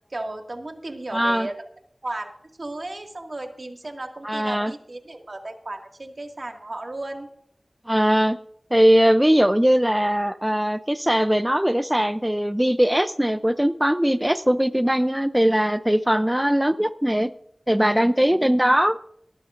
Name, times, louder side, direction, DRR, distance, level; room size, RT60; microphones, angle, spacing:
voice 1, 0.1-1.6 2.0-2.3 2.6-7.3, right 2 dB, 60° right, 3 dB, 2.1 m, -34 dB
voice 2, 1.1-1.5 4.2-4.7 7.9-8.4 8.7-17.3 17.7-19.0, equal, 10° right, 11 dB, 0.5 m, -20 dB
19.5 x 12.0 x 2.6 m, 0.68 s
wide cardioid pair, 45°, 0 cm